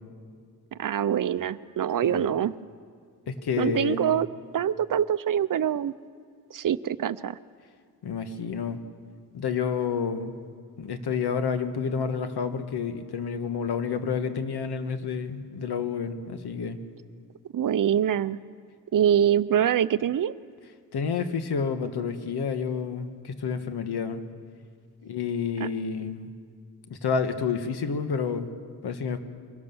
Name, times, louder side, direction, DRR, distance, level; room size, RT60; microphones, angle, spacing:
voice 1, 0.8-2.6 3.6-4.3 4.5-5.9 6.5-7.4 17.5-18.4 18.9-20.3 25.6-25.7, right 9 dB, 55° right, 16 dB, 0.6 m, -24 dB
voice 2, 3.3-4.2 8.0-8.8 9.3-10.3 10.8-16.8 20.9-24.2 25.0-26.3 26.9-28.5 28.8-29.2, left 6 dB, 85° left, 8 dB, 1.5 m, -29 dB
24.0 x 16.5 x 7.0 m, 2.1 s
cardioid pair, 100°, 38 cm